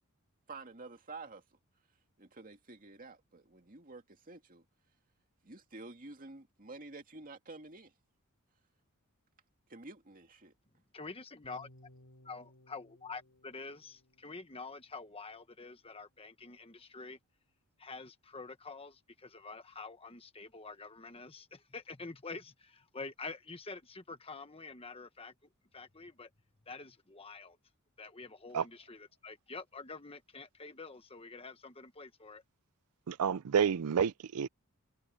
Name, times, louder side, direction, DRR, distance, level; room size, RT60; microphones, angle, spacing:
voice 1, 0.5-1.4 2.2-4.6 5.4-7.9 9.7-10.5, right 3 dB, 40° right, 2.3 m, -49 dB
voice 2, 10.9-11.7 12.2-17.2 17.8-25.3 25.7-26.3 26.7-27.6 28.0-32.4, left 4 dB, 25° left, 1.3 m, -47 dB
sound 1, 11.4-15.5, left 1 dB, 80° left, 2.7 m, -62 dB
voice 3, 33.1-34.5, right 7 dB, 85° right, 0.5 m, -29 dB
head